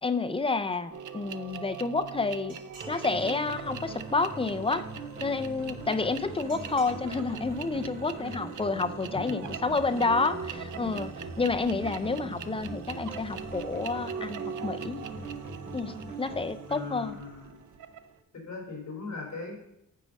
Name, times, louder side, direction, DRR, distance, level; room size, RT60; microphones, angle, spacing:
voice 1, 0.0-2.6 2.9-4.9 5.2-11.1 11.4-15.0 15.7-17.2, left 3 dB, 20° left, 9 dB, 0.3 m, -29 dB
sound 1, 0.9-18.1, right 7 dB, 65° right, 0.5 m, -42 dB
sound 2, 2.5-3.5 6.5-7.0, right 3 dB, 90° right, 2.6 m, -50 dB
sound 3, 2.8-17.9, right 3 dB, 20° right, 3.0 m, -42 dB
voice 2, 16.7-17.5 18.3-19.5, left 3 dB, 50° left, -1 dB, 3.3 m, -39 dB
9.1 x 5.1 x 5.2 m, 0.81 s
wide cardioid pair, 170°, 33 cm